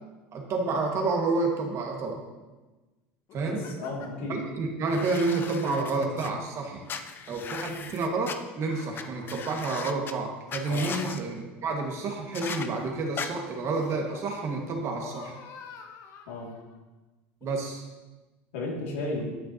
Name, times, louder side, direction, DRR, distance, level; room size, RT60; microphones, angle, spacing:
voice 1, 0.3-2.2 3.3-3.6 4.3-6.9 7.3-15.4 17.4-17.8, right 3 dB, 45° right, 1 dB, 1.8 m, -29 dB
sound 1, 3.3-4.2 4.9-6.6 7.1-7.6 8.2-9.5 10.1-11.2 12.0-13.1 13.7-14.3 14.7-16.8 17.4-17.5, left 6 dB, 50° left, 1.0 m, -48 dB
voice 2, 3.5-4.4 10.7-10.9 16.3-16.5 18.5-19.3, left 2 dB, 90° left, -3 dB, 2.5 m, -33 dB
sound 2, 4.9-6.3 6.9-8.4 8.9-9.0 9.3-10.1 10.5-11.2 12.3-12.7 13.2-13.3, left 6 dB, 30° left, 0.6 m, -37 dB
12.0 x 6.4 x 2.9 m, 1.2 s
supercardioid pair, 110°, 7 cm